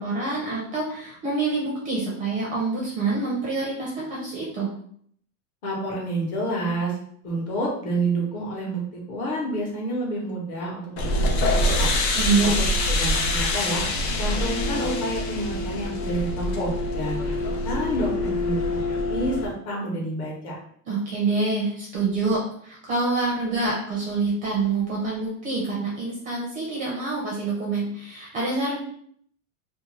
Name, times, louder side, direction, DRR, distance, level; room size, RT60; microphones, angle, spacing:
voice 1, 0.0-4.7 12.2-12.5 20.9-28.8, right 3 dB, 20° right, -4 dB, 0.4 m, -26 dB
voice 2, 5.6-6.9 7.2-8.8 9.1-11.9 12.4-12.5 12.9-13.8 14.2-17.3 17.6-20.5, right 1 dB, 40° left, -2 dB, 0.9 m, -29 dB
sound 1, 11.0-19.5, left 1 dB, 80° left, 0.7 m, -25 dB
2.6 x 2.2 x 3.1 m, 0.63 s
supercardioid pair, 165°, 38 cm